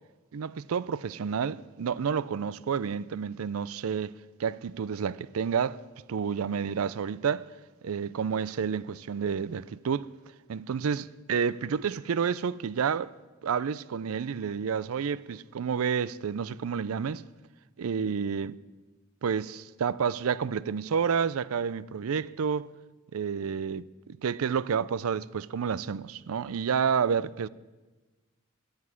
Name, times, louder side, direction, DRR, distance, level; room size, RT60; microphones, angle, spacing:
voice 1, 0.3-4.1 4.4-5.8 6.1-7.4 7.8-10.1 10.5-13.1 13.4-17.2 17.8-18.6 19.2-22.7 23.1-23.9 24.2-27.5, right 6 dB, 90° right, 0.4 m, -30 dB
9.5 x 9.4 x 9.9 m
head